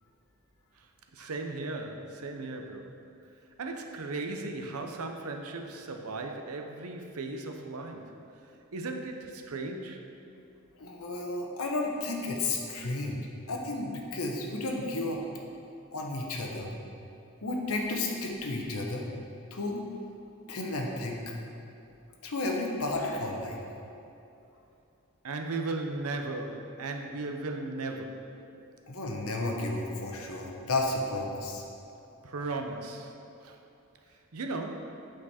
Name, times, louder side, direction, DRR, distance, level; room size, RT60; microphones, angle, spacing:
voice 1, 1.1-2.9 3.6-8.1 8.7-10.0 25.2-28.3 32.2-33.2 33.4-33.6 34.3-34.9, right 3 dB, 85° right, 4 dB, 0.7 m, -36 dB
voice 2, 10.8-13.2 13.5-15.4 15.9-16.7 17.4-19.1 19.5-19.8 20.5-21.2 22.2-23.6 28.9-31.6, left 2 dB, 80° left, 1 dB, 1.0 m, -32 dB
8.3 x 5.1 x 4.2 m, 2.7 s
head